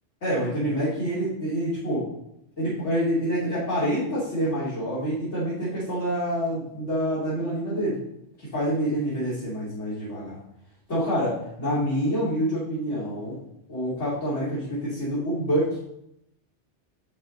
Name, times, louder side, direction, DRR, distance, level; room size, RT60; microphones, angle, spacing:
voice 1, 0.2-2.0 2.6-8.0 8.4-10.4 10.9-13.4 13.7-15.8, equal, 70° left, -12 dB, 3.5 m, -27 dB
10.5 x 4.4 x 5.3 m, 0.80 s
omnidirectional pair, 1.2 m